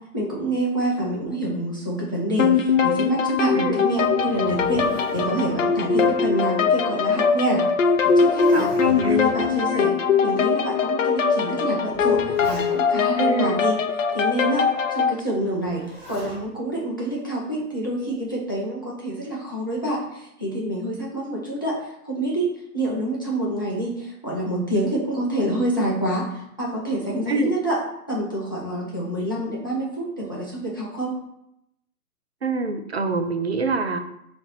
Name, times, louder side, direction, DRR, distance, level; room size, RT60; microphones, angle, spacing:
voice 1, 0.1-7.6 8.0-8.7 9.0-9.9 10.2-13.8 14.1-27.8 28.1-31.1, right 1 dB, 15° left, -5 dB, 0.6 m, -27 dB
sound 1, 2.4-15.2, left 6 dB, 55° left, 0.6 m, -21 dB
Zipper (clothing), 3.9-6.9 7.2-7.3 7.9-9.7 10.5-10.6 11.6-13.1 15.6-16.5 17.8-18.3, equal, 5° right, 1.0 m, -39 dB
voice 2, 8.5-9.2 9.7-9.8 13.2-13.6 27.3-27.5 32.4-34.0, right 3 dB, 45° right, 7 dB, 0.6 m, -25 dB
6.9 x 3.4 x 4.0 m, 0.79 s
hypercardioid pair, 175°, 46 cm